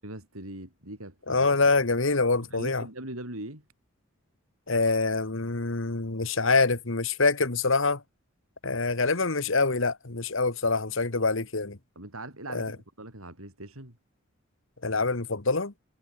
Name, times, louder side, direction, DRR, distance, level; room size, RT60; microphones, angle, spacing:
voice 1, 0.0-1.7 2.5-3.6 12.0-14.0, right 1 dB, 80° right, 7.9 m, -41 dB
voice 2, 1.3-2.8 4.7-8.0 8.6-11.8 12.5-12.7 14.8-15.7, left 3 dB, 65° left, 1.6 m, -25 dB
head